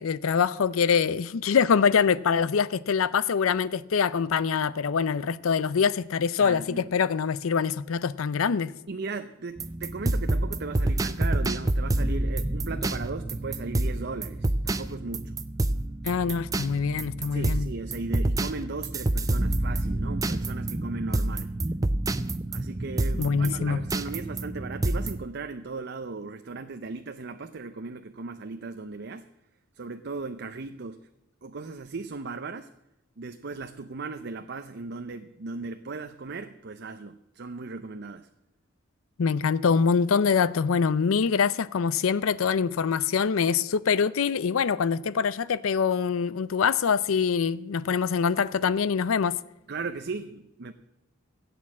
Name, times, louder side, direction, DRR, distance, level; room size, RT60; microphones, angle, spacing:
voice 1, 0.0-8.7 16.0-17.7 23.2-23.8 39.2-49.4, left 6 dB, 80° left, 0.5 m, -24 dB
voice 2, 6.4-6.9 8.9-15.4 17.3-21.5 22.5-29.2 29.7-31.0 31.4-32.7 33.2-38.3 49.7-50.7, right 3 dB, 55° right, 0.6 m, -37 dB
sound 1, 9.6-25.2, right 1 dB, 15° right, 0.5 m, -28 dB
16.0 x 8.5 x 7.4 m
head